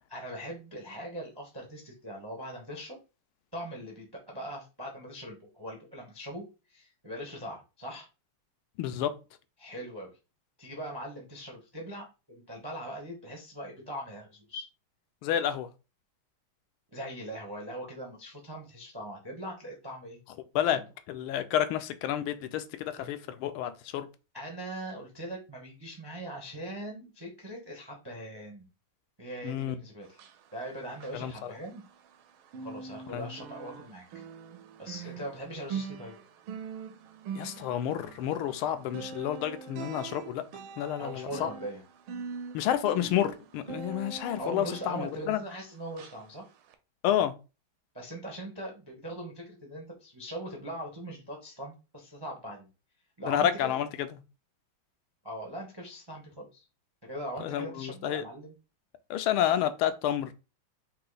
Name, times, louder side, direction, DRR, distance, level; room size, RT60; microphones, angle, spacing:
voice 1, 0.1-3.0 3.5-8.1 9.6-10.1 10.6-14.7 16.9-20.2 20.7-20.8 24.3-28.7 29.2-30.2 30.5-31.8 32.6-34.2 34.8-36.1 41.0-41.8 44.4-46.5 47.9-52.7 53.2-53.7 55.2-56.6 57.0-58.6, right 1 dB, 40° right, 0.3 m, -41 dB
voice 2, 8.8-9.1 15.2-15.7 20.5-20.8 21.1-22.6 22.9-24.1 29.4-29.7 31.2-31.3 33.1-33.3 37.4-40.4 40.8-41.5 42.5-45.4 47.0-47.3 53.3-53.9 57.4-58.2 59.1-60.3, left 10 dB, 80° left, 1.4 m, -29 dB
sound 1, 30.1-32.2 32.5-45.6 46.0-46.2 46.7-46.8, right 6 dB, 85° right, 1.5 m, -43 dB
4.0 x 2.9 x 3.9 m
omnidirectional pair, 2.3 m